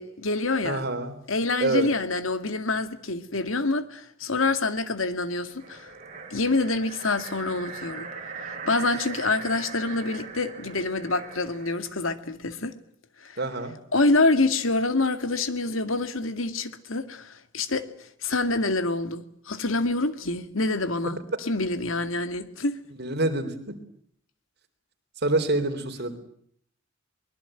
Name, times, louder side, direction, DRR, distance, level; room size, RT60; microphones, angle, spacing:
voice 1, 0.0-0.8 1.3-5.9 6.3-8.1 8.4-12.8 13.2-13.4 13.9-22.8, left 2 dB, 80° left, 2.2 m, -26 dB
voice 2, 0.6-1.2 1.6-1.9 13.4-13.7 23.0-23.8 25.2-26.2, right 2 dB, 55° right, 3.8 m, -26 dB
sound 1, 5.5-11.9, right 5 dB, 40° right, 4.0 m, -40 dB
23.5 x 21.5 x 9.1 m
head